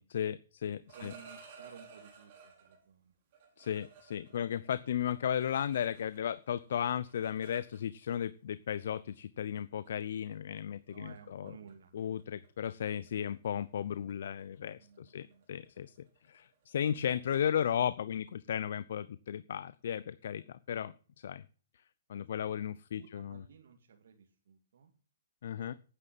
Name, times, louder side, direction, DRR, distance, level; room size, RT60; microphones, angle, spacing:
voice 1, 0.0-1.1 3.6-11.5 11.9-15.9 16.3-21.4 22.1-23.4 25.4-25.7, left 9 dB, 60° left, 16 dB, 0.7 m, -35 dB
sound 1, 0.7-2.8 3.3-6.4 6.6-8.2 9.1-9.2 9.6-9.9 10.3-10.6 10.9-11.2 11.5-11.7 12.0-17.4, right 5 dB, 40° right, 5.0 m, -57 dB
voice 2, 0.9-3.1 4.3-4.5 10.9-12.2 14.8-15.7 22.1-22.7 23.0-24.9 25.5-25.7, right 7 dB, 65° right, 3 dB, 2.3 m, -56 dB
9.8 x 9.7 x 7.5 m, 0.41 s
hypercardioid pair, 155°, 0 cm